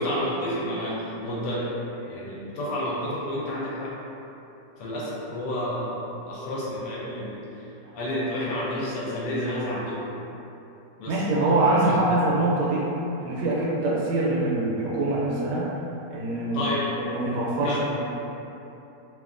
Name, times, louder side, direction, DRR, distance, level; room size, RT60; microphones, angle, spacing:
voice 1, 0.0-3.9 4.8-7.7 7.9-10.0 11.0-12.0 16.5-16.9 17.6-17.9, left 1 dB, 75° left, -7 dB, 1.1 m, -30 dB
voice 2, 11.1-13.0 13.2-15.7 16.1-16.6 17.0-18.0, right 2 dB, 75° right, -5 dB, 1.2 m, -24 dB
2.8 x 2.3 x 2.4 m, 3.0 s
omnidirectional pair, 1.9 m